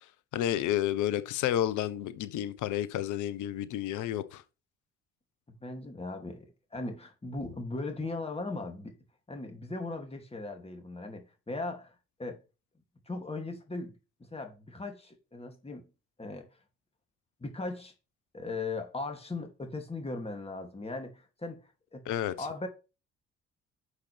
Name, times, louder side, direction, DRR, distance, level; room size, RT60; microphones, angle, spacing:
voice 1, 0.3-4.4 22.1-22.3, left 12 dB, 60° left, 1.1 m, -30 dB
voice 2, 5.6-9.0 9.3-12.4 13.1-13.9 14.3-15.9 16.2-16.5 17.4-17.9 18.3-21.6 21.9-22.0 22.4-22.7, left 3 dB, 15° left, 2.6 m, -38 dB
11.5 x 6.8 x 3.4 m
figure-of-eight pair, 45°, 35 cm